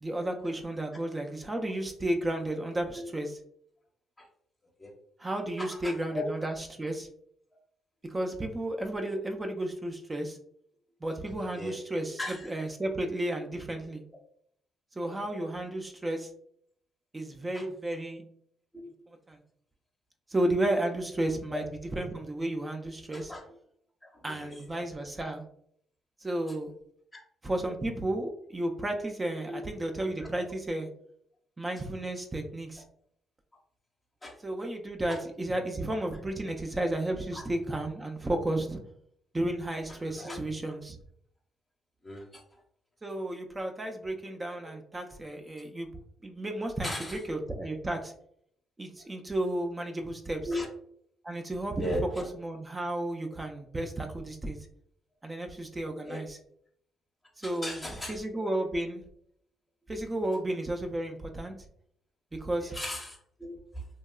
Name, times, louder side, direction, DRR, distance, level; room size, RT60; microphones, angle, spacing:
voice 1, 0.0-3.4 5.2-7.1 8.0-10.4 11.0-12.2 12.4-14.0 15.0-16.3 17.1-18.2 19.3-19.4 20.3-21.7 22.0-23.3 24.2-25.4 26.2-26.7 27.4-30.9 31.6-32.8 34.4-38.8 39.3-41.0 43.0-45.9 46.2-48.1 48.8-50.5 51.2-54.6 55.2-56.4 57.4-57.8 58.1-59.0 59.9-61.6 62.4-62.7, right 1 dB, 20° right, 4 dB, 0.3 m, -33 dB
voice 2, 5.6-6.5 11.5-11.8 12.2-12.5 15.1-15.3 17.5-17.7 18.7-18.9 21.5-21.6 23.1-23.4 24.0-24.8 27.1-27.2 29.5-29.7 30.2-30.3 34.2-34.4 35.1-35.2 37.3-37.5 39.9-40.4 42.0-42.6 46.8-47.2 50.4-50.7 51.8-52.3 56.0-56.2 57.4-58.4 62.6-63.9, left 1 dB, 20° left, -1 dB, 0.6 m, -38 dB
2.8 x 2.2 x 2.2 m, 0.68 s
cardioid pair, 85°, 0 cm